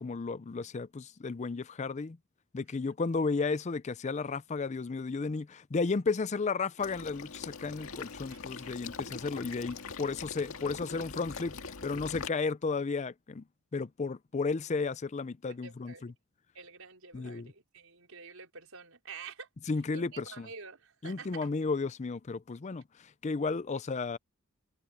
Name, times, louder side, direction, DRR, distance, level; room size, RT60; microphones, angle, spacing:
voice 1, 0.0-2.2 2.5-11.6 11.8-13.4 13.7-16.1 17.1-17.5 19.7-20.5 21.0-24.2, left 4 dB, 35° left, 0.4 m, -33 dB
Water / Liquid, 6.8-12.3, left 4 dB, 90° left, 1.9 m, -42 dB
voice 2, 15.6-16.0 16.5-19.5 19.9-21.5, right 5 dB, 80° right, 4.8 m, -48 dB
head